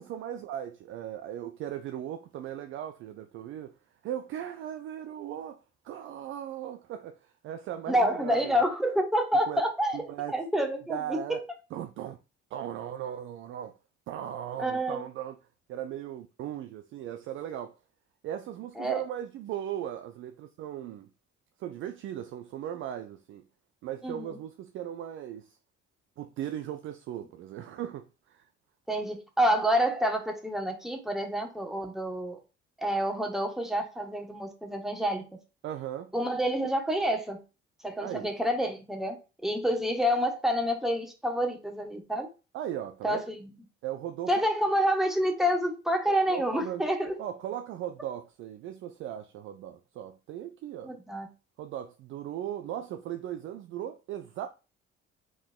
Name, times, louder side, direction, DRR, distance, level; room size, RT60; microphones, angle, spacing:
voice 1, 0.0-3.8 4.0-8.6 9.5-9.6 9.9-10.3 10.9-11.4 11.7-12.2 12.5-13.8 14.1-15.4 15.7-17.7 18.2-21.1 21.6-23.4 23.8-25.6 26.2-28.5 35.6-36.1 38.0-38.3 42.5-43.2 43.8-44.5 46.1-46.8 47.2-50.9 51.6-54.5, right 11 dB, 35° right, 0.4 m, -38 dB
voice 2, 7.9-10.0 10.3-11.4 14.6-15.0 18.8-19.0 24.0-24.3 28.9-32.4 32.8-35.2 36.1-37.4 37.8-39.2 39.4-42.3 43.0-43.5 44.3-47.1 50.8-51.3, equal, ahead, 1.0 m, -28 dB
3.8 x 3.5 x 2.2 m
figure-of-eight pair, 50°, 36 cm